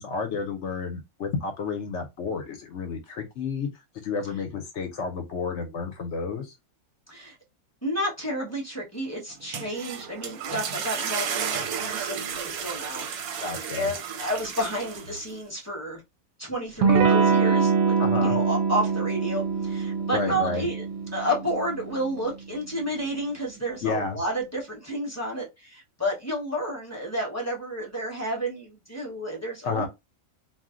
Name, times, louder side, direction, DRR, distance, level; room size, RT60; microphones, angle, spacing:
voice 1, 0.0-3.7 4.0-6.5 13.4-13.9 18.0-18.4 20.1-20.7 23.8-24.2 29.6-29.9, left 4 dB, 65° left, 0.8 m, -31 dB
voice 2, 7.8-16.0 16.4-20.8 21.1-29.9, equal, 15° left, 0.8 m, -31 dB
sound 1, 9.3-15.4, right 7 dB, 90° right, 1.1 m, -33 dB
Electric guitar / Strum, 16.8-22.2, right 5 dB, 65° right, 0.8 m, -24 dB
2.5 x 2.0 x 3.6 m
omnidirectional pair, 1.5 m